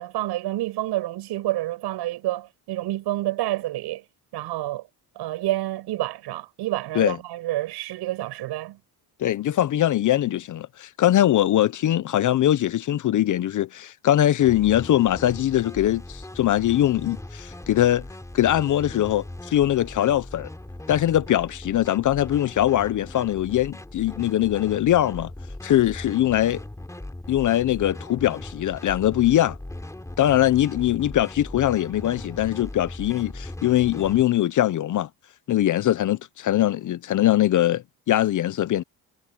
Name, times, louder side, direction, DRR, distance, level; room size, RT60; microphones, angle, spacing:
voice 1, 0.0-4.0 4.3-4.8 5.1-8.8, right 15 dB, 85° right, 6.4 m, -28 dB
voice 2, 9.2-18.0 18.3-20.5 20.9-25.3 25.6-26.6 27.3-29.6 30.2-35.1 35.5-38.8, left 12 dB, 50° left, 0.7 m, -22 dB
sound 1, 14.4-34.2, left 1 dB, 10° left, 3.7 m, -39 dB
cardioid pair, 120°, 39 cm